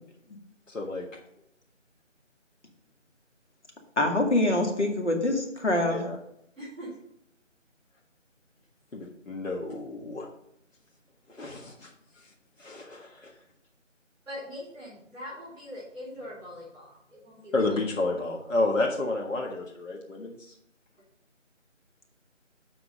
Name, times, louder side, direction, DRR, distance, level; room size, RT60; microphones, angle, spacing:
voice 1, 0.7-1.2 5.9-6.2 8.9-10.3 11.3-11.9 12.2-12.3 12.6-13.3 17.5-20.5, left 2 dB, 85° left, -1 dB, 1.7 m, -31 dB
voice 2, 4.0-6.1, left 1 dB, 60° left, 2 dB, 2.1 m, -25 dB
voice 3, 6.6-7.0 14.2-18.2, left 1 dB, 5° left, -24 dB, 2.6 m, -42 dB
7.7 x 5.9 x 5.2 m, 0.75 s
figure-of-eight pair, 180°, 38 cm